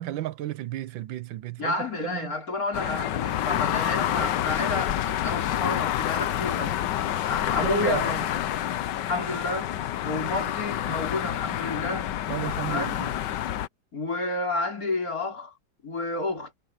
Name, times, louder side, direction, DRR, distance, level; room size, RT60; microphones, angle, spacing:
voice 1, 0.0-2.3 7.5-8.1 9.3-9.4 12.3-13.1, right 13 dB, 75° right, 1.5 m, -33 dB
voice 2, 1.6-6.8 7.1-8.2 9.0-9.7 10.0-12.1 12.7-13.0 13.9-15.6 15.8-16.5, left 2 dB, 45° left, 4.7 m, -30 dB
sound 1, 2.7-13.7, left 12 dB, 70° left, 1.4 m, -28 dB
omnidirectional pair, 2.1 m